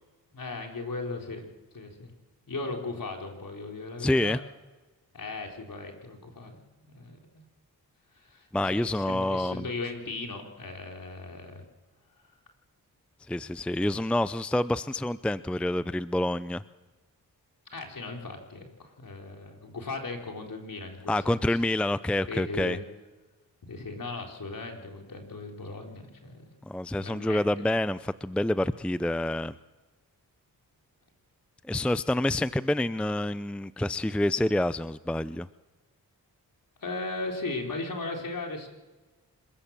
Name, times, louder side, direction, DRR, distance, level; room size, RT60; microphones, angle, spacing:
voice 1, 0.3-1.5 1.7-2.1 2.5-4.4 5.1-6.6 6.8-7.4 8.1-11.6 17.7-21.6 22.3-22.8 23.7-26.5 27.0-27.6 36.8-38.7, left 3 dB, 60° left, 2 dB, 4.2 m, -37 dB
voice 2, 4.0-4.4 8.5-9.6 13.3-16.6 21.1-22.8 26.7-29.5 31.7-35.5, left 1 dB, 5° left, 16 dB, 0.5 m, -27 dB
26.0 x 14.5 x 7.4 m, 1.2 s
cardioid pair, 50°, 38 cm